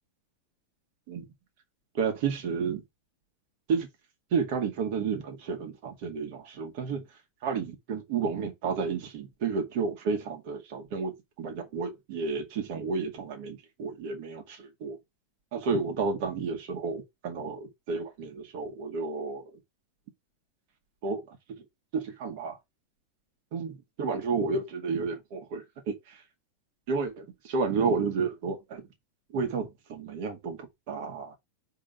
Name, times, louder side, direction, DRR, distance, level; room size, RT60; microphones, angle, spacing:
voice 1, 1.9-2.8 3.7-3.9 4.3-7.0 7.4-15.0 15.5-19.5 21.0-21.4 21.9-22.6 23.5-26.2 26.9-28.9 29.3-31.4, right 5 dB, 45° right, 2.0 m, -31 dB
5.1 x 3.7 x 5.8 m
figure-of-eight pair, 90°, 0 cm